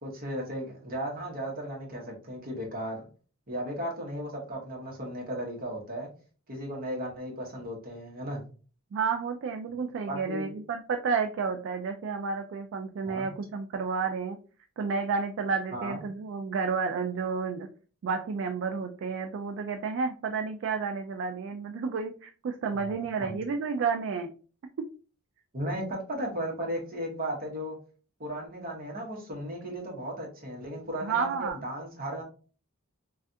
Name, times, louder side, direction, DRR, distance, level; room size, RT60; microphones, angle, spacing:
voice 1, 0.0-3.0 3.5-6.1 6.5-8.4 9.7-9.8 10.1-10.5 13.0-13.3 15.7-16.0 22.7-23.4 25.5-27.8 28.2-32.2, equal, 45° right, -1 dB, 1.1 m, -35 dB
voice 2, 8.9-14.4 14.8-17.7 18.0-24.3 24.8-24.9 31.0-31.6, right 5 dB, 60° right, 6 dB, 0.3 m, -31 dB
3.2 x 2.3 x 2.6 m, 0.38 s
head